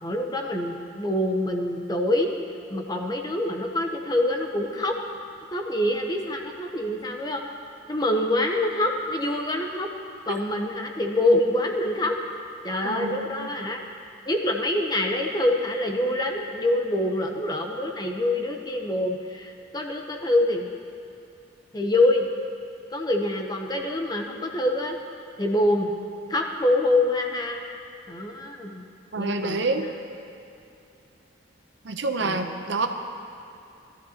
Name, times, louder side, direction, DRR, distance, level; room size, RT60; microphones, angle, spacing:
voice 1, 0.0-2.3 2.7-5.0 5.5-7.4 7.9-9.9 10.3-12.2 12.6-13.8 14.2-20.7 21.7-22.3 22.9-25.0 25.4-25.9 26.3-27.6 28.1-28.9 29.1-29.7 32.2-32.6, left 1 dB, 20° left, 2 dB, 0.8 m, -25 dB
voice 2, 12.8-13.5 29.1-29.9 31.8-32.9, right 3 dB, 65° right, 6 dB, 0.7 m, -27 dB
19.0 x 13.0 x 2.9 m, 2.7 s
head